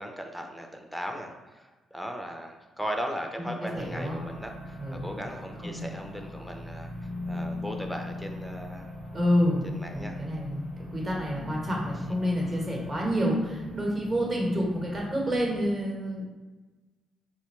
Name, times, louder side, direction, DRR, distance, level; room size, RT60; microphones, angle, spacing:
voice 1, 0.0-8.9 9.7-10.2 12.4-12.5, equal, ahead, 3 dB, 0.5 m, -38 dB
voice 2, 3.4-4.2 4.8-5.1 5.6-6.0 9.1-10.6 10.9-16.2, equal, 35° right, -2 dB, 1.1 m, -29 dB
sound 1, 3.7-15.7, left 2 dB, 60° right, 1.0 m, -39 dB
4.2 x 2.1 x 3.0 m, 1.2 s
cardioid pair, 90°, 0 cm